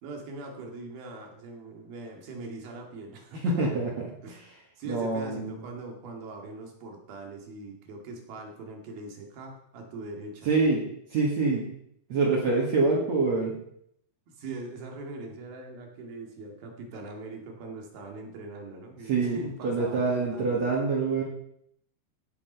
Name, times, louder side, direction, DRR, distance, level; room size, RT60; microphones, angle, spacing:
voice 1, 0.0-3.7 4.2-4.5 4.8-10.5 14.3-20.6, right 2 dB, 80° right, 2 dB, 4.0 m, -41 dB
voice 2, 3.4-4.1 4.9-5.6 10.5-10.8 11.1-11.7 12.1-13.6 19.1-21.2, right 3 dB, 55° right, -4 dB, 2.9 m, -25 dB
15.0 x 7.0 x 5.5 m, 0.71 s
omnidirectional pair, 4.2 m